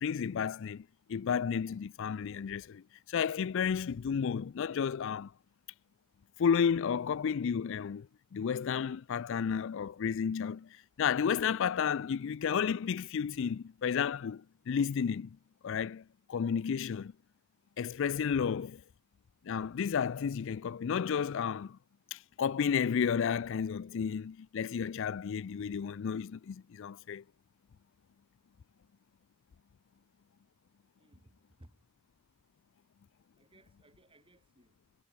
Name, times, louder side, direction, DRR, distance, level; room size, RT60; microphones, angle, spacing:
voice 1, 0.0-5.3 6.4-15.4 15.6-17.1 17.8-18.8 19.4-21.8 22.1-27.2, left 7 dB, 60° left, 0.4 m, -32 dB
voice 2, 31.0-31.9 33.4-34.8, right 1 dB, 25° right, 3.5 m, -61 dB
head